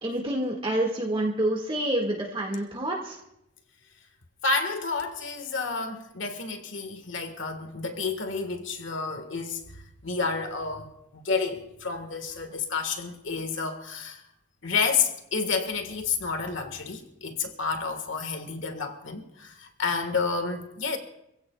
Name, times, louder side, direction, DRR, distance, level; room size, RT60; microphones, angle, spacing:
voice 1, 0.0-3.2, right 1 dB, 25° right, 1.8 m, -28 dB
voice 2, 4.4-9.6 10.0-14.2 14.6-21.0, left 4 dB, 75° left, 1.5 m, -30 dB
27.0 x 16.0 x 2.3 m
head